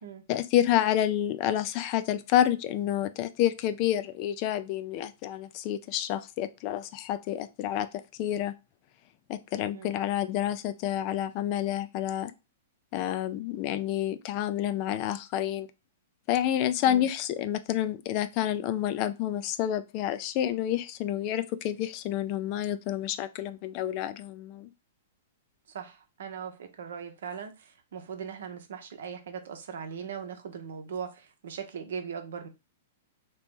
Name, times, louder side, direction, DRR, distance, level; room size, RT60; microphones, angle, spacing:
voice 1, 0.3-7.9 8.2-8.5 9.3-12.3 12.9-15.7 16.3-24.7, left 11 dB, 45° left, 0.4 m, -29 dB
voice 2, 25.7-32.5, right 7 dB, 70° right, 0.7 m, -39 dB
2.9 x 2.9 x 3.5 m
hypercardioid pair, 120°, 0 cm